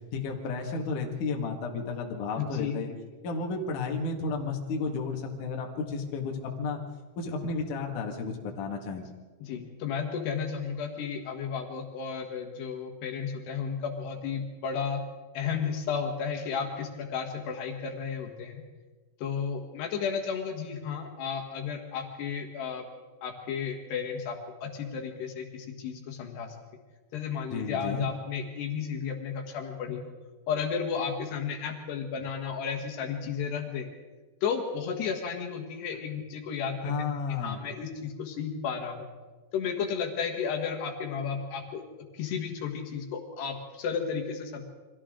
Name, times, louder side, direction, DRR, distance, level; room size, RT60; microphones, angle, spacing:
voice 1, 0.1-2.9 3.2-6.8 7.2-9.0 27.5-28.1 36.8-37.6, left 4 dB, 55° left, 1 dB, 3.1 m, -32 dB
voice 2, 2.4-2.8 9.4-15.0 15.4-18.6 19.2-22.9 23.2-26.6 27.1-30.1 30.5-33.9 34.4-37.0 37.4-39.1 39.5-44.6, left 6 dB, 70° left, 3 dB, 3.6 m, -33 dB
29.5 x 24.0 x 3.8 m, 1.3 s
omnidirectional pair, 5.1 m